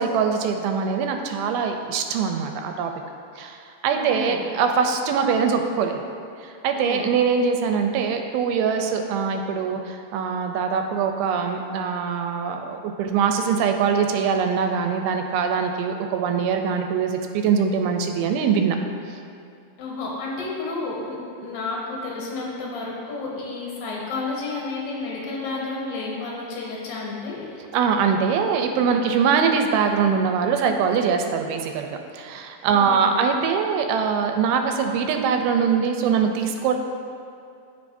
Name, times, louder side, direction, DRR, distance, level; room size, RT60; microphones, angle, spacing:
voice 1, 0.0-2.9 3.4-3.6 3.8-6.0 6.4-18.8 27.7-36.8, right 6 dB, 85° right, 5 dB, 2.4 m, -23 dB
voice 2, 3.9-4.4 6.8-7.0 19.8-27.6 32.7-33.1, left 3 dB, 70° left, -3 dB, 2.6 m, -31 dB
14.0 x 5.1 x 2.6 m, 2.5 s
omnidirectional pair, 4.4 m